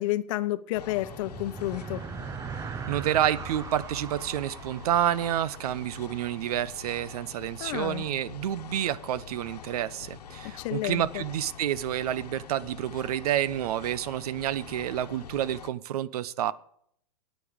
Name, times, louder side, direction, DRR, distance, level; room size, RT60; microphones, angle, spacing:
voice 1, 0.0-2.0 7.6-8.0 10.6-11.2, left 16 dB, 55° left, 0.8 m, -30 dB
sound 1, 0.7-15.7, left 8 dB, 85° left, 1.2 m, -45 dB
sound 2, 0.8-6.5, right 7 dB, 15° right, 0.5 m, -40 dB
voice 2, 2.9-16.5, right 11 dB, 70° right, 0.7 m, -29 dB
13.0 x 9.3 x 5.1 m
hypercardioid pair, 125°, 20 cm